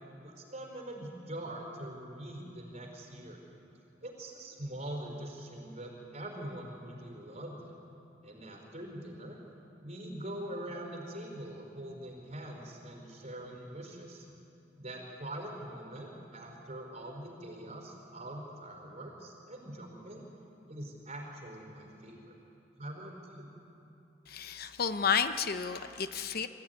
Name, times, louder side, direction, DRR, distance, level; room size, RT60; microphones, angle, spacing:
voice 1, 0.2-3.4 4.0-7.7 8.2-9.4 9.8-14.3 14.8-20.3 20.7-22.4 22.8-23.5, right 1 dB, 40° right, 1 dB, 4.7 m, -43 dB
voice 2, 24.3-26.5, left 6 dB, 55° left, 9 dB, 0.8 m, -31 dB
24.5 x 15.0 x 9.6 m, 2.8 s
head